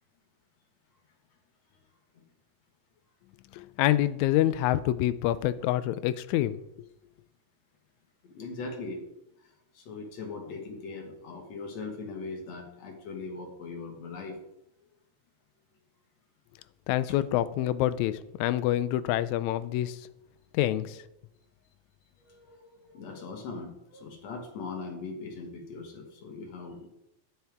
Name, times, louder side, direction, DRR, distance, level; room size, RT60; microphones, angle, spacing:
voice 1, 3.5-6.6 16.9-20.0 20.5-21.0, left 13 dB, 80° left, 14 dB, 1.9 m, -26 dB
voice 2, 8.2-9.0 9.7-14.4 22.2-26.9, left 3 dB, 65° left, 2 dB, 2.6 m, -40 dB
10.0 x 9.4 x 3.5 m, 0.85 s
omnidirectional pair, 3.4 m